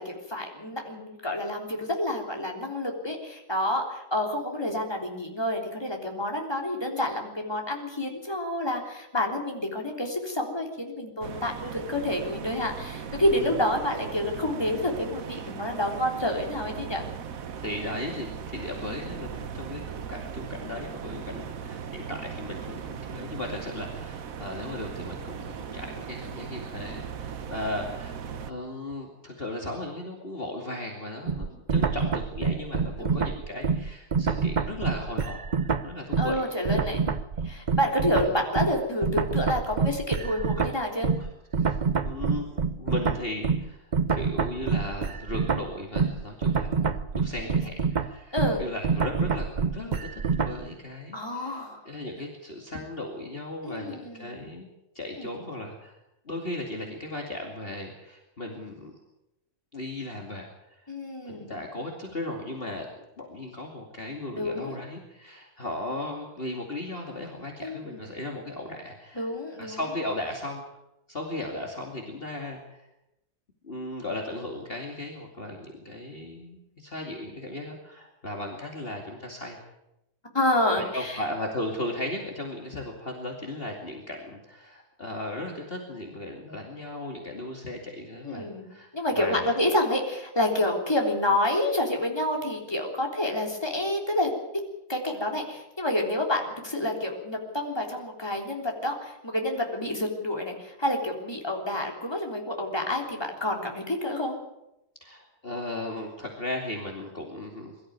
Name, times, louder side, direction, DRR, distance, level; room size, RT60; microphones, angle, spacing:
voice 1, 0.0-17.0 18.6-18.7 33.0-33.4 36.2-37.0 37.4-41.1 47.3-47.6 48.3-48.6 51.1-51.8 53.6-54.4 55.2-55.3 60.9-61.5 64.4-64.8 67.6-68.0 69.2-69.8 80.3-81.2 88.2-88.7 88.9-94.3 94.9-104.4, left 1 dB, 15° left, 1 dB, 3.6 m, -28 dB
sound 1, 11.2-28.5, right 7 dB, 65° right, 1.4 m, -38 dB
voice 2, 13.3-13.6 15.3-15.4 17.5-36.4 36.9-37.0 38.3-38.4 41.2-41.3 41.6-42.5 42.8-46.8 47.1-54.7 54.9-56.0 56.3-59.0 59.7-60.9 61.2-62.9 63.2-69.3 69.6-70.6 71.1-72.9 73.6-79.6 80.8-89.5 91.5-91.6 105.0-107.8, left 1 dB, 35° left, 1 dB, 2.7 m, -36 dB
sound 2, 31.3-36.4 36.7-50.7, right 5 dB, 35° right, 0.9 m, -27 dB
22.5 x 13.5 x 9.5 m, 0.88 s
omnidirectional pair, 1.7 m